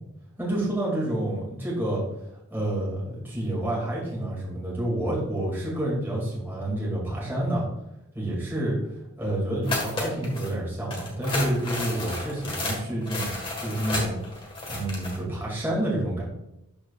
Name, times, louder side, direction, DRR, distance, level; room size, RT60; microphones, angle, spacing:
voice 1, 0.4-2.0 2.5-7.7 8.1-8.8 9.2-13.3 13.6-14.2 14.7-16.2, right 1 dB, 10° right, -6 dB, 2.4 m, -28 dB
sound 1, 9.6-10.5 10.9-15.2, left 2 dB, 25° left, 1.5 m, -32 dB
12.0 x 4.4 x 2.4 m, 0.87 s
head